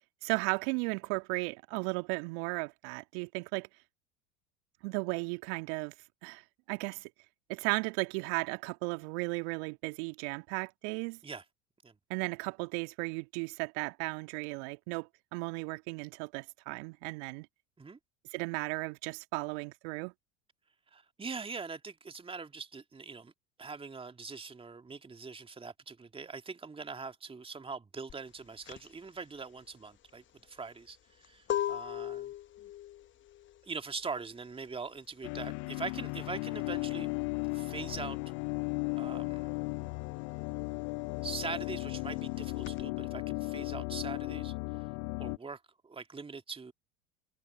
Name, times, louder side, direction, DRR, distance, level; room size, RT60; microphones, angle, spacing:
voice 1, 0.2-3.7 4.8-5.9 6.2-6.4 6.7-7.1 7.5-11.2 12.1-17.5 18.3-20.1, right 32 dB, 60° right, 1.9 m, -35 dB
voice 2, 20.9-23.3 23.6-32.3 33.6-37.1 37.5-38.2 39.0-39.5 41.2-44.5 45.2-46.7, right 4 dB, 15° right, 2.0 m, -42 dB
sound 1, 28.1-38.3 38.6-42.8, left 11 dB, 30° left, 1.2 m, -40 dB
sound 2, 35.2-45.4, left 36 dB, 50° left, 0.5 m, -36 dB
hypercardioid pair, 75°, 37 cm